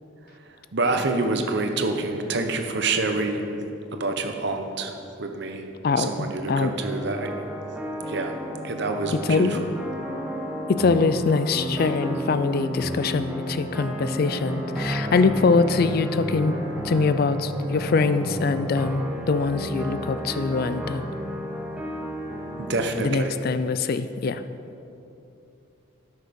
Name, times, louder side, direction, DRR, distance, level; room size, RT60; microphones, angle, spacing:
voice 1, 0.7-5.6 6.0-7.3 8.1-8.3 8.6-9.7 22.6-23.4, right 3 dB, 55° right, 5 dB, 0.9 m, -27 dB
sound 1, 6.8-22.7, equal, 5° right, 1.0 m, -32 dB
voice 2, 9.2-9.6 10.7-16.5 16.8-21.0 23.0-24.4, left 4 dB, 45° left, 11 dB, 0.4 m, -23 dB
12.5 x 6.5 x 5.2 m, 2.8 s
head